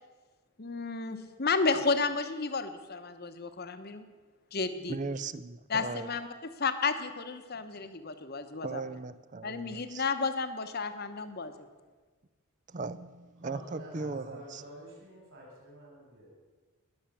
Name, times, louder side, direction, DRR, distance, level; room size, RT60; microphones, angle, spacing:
voice 1, 0.6-4.0 4.5-5.0 5.7-8.8 9.4-11.7, left 4 dB, 45° left, 9 dB, 1.0 m, -32 dB
voice 2, 4.9-6.1 8.6-10.0 12.7-14.6, right 3 dB, 35° right, 16 dB, 0.5 m, -38 dB
voice 3, 13.4-16.3, right 1 dB, 60° right, -3 dB, 5.9 m, -49 dB
20.5 x 7.3 x 7.1 m, 1.4 s
head